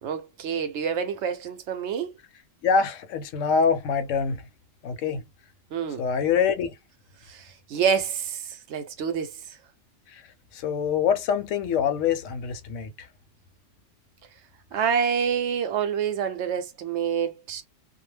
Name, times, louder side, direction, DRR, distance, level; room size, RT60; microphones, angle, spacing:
voice 1, 0.0-2.1 5.7-6.0 7.3-9.3 14.7-17.6, right 7 dB, 70° right, 0.8 m, -27 dB
voice 2, 2.6-4.5 4.8-5.2 6.0-6.7 10.1-10.2 10.5-13.1, left 6 dB, 80° left, 0.9 m, -25 dB
2.3 x 2.1 x 3.1 m
omnidirectional pair, 1.3 m